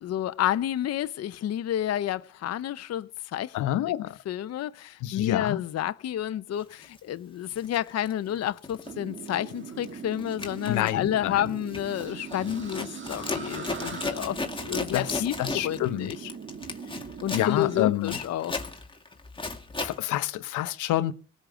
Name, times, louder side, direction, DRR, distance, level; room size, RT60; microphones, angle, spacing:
voice 1, 0.0-3.7 4.3-14.4 14.6-15.4 15.6-16.2 17.2-18.5, left 11 dB, 55° left, 0.7 m, -30 dB
voice 2, 3.5-4.2 5.0-5.6 10.7-11.4 14.9-16.3 17.3-18.2 19.8-21.1, left 14 dB, 85° left, 0.9 m, -28 dB
Zipper (clothing), 6.8-7.0 7.5-8.9 9.2-9.5 9.8-20.0, left 3 dB, 15° left, 2.3 m, -36 dB
sound 1, 8.8-17.8, right 6 dB, 40° right, 1.6 m, -41 dB
18.5 x 6.4 x 8.9 m
cardioid pair, 90°, 30 cm